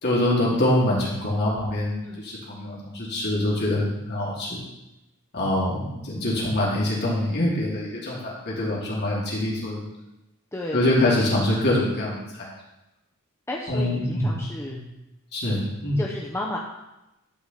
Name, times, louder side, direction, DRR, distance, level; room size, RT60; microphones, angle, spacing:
voice 1, 0.0-4.6 5.3-9.8 10.7-12.5 13.7-14.4 14.7-14.8 15.3-16.0, left 1 dB, 50° left, -5 dB, 2.6 m, -24 dB
voice 2, 5.4-6.0 10.5-11.2 13.5-14.8 16.0-16.6, left 1 dB, 10° left, -2 dB, 0.9 m, -33 dB
12.0 x 5.0 x 6.8 m, 0.95 s
head